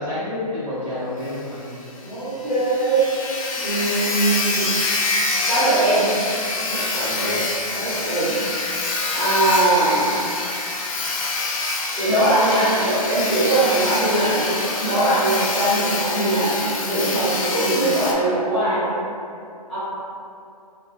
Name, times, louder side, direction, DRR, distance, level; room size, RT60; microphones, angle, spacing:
voice 1, 0.0-1.8 3.5-3.7 7.0-7.4, left 1 dB, 30° right, -10 dB, 0.9 m, -29 dB
Sawing, 1.2-1.3 1.7-1.8 2.1-2.2 2.4-18.1, left 3 dB, 55° left, 0.5 m, -26 dB
voice 2, 2.0-3.1 3.6-4.8 5.5-6.2 6.6-7.4 7.7-8.4 9.1-10.2 12.0-18.9 19.7-19.8, right 2 dB, ahead, -16 dB, 0.8 m, -21 dB
2.4 x 2.2 x 3.4 m, 2.5 s
hypercardioid pair, 150°, 20 cm